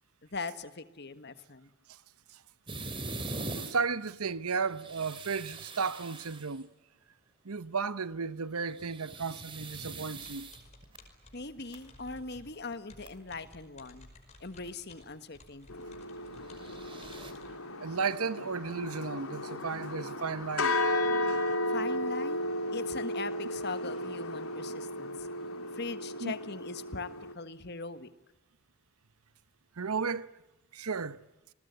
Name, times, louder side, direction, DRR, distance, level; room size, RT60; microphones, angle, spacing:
voice 1, 0.2-1.7 11.3-14.1 14.4-15.7 21.7-22.5 22.7-25.3 25.7-27.1 27.3-28.1, left 3 dB, 45° left, 1.5 m, -40 dB
sound 1, 2.7-3.7 4.6-6.6 8.6-11.0 11.6-11.7 12.7-12.8 13.0-13.1 16.4-17.3, right 2 dB, 25° right, 3.0 m, -42 dB
voice 2, 3.6-6.7 7.4-10.5 17.8-20.8 26.2-26.3 29.8-30.3 30.7-31.2, right 5 dB, 80° right, 0.9 m, -34 dB
sound 2, 10.2-17.5, left 2 dB, 30° left, 5.4 m, -56 dB
sound 3, 15.7-27.3, left 1 dB, 70° left, 3.1 m, -34 dB
28.5 x 20.5 x 9.5 m
head